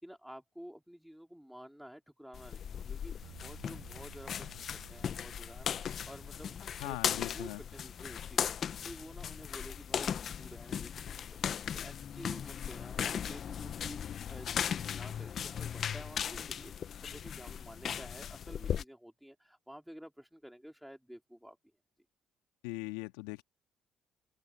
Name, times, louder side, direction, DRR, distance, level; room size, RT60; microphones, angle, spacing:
voice 1, 0.0-8.5 8.8-11.2 11.5-21.6, equal, ahead, 3.9 m, -51 dB
sound 1, 2.3-18.8, left 8 dB, 55° left, 1.3 m, -38 dB
Bass guitar, 3.2-9.5, right 17 dB, 75° right, 7.6 m, -58 dB
voice 2, 6.8-7.6 22.6-23.4, left 23 dB, 85° left, 2.2 m, -40 dB
open air
hypercardioid pair, 50°, 0 cm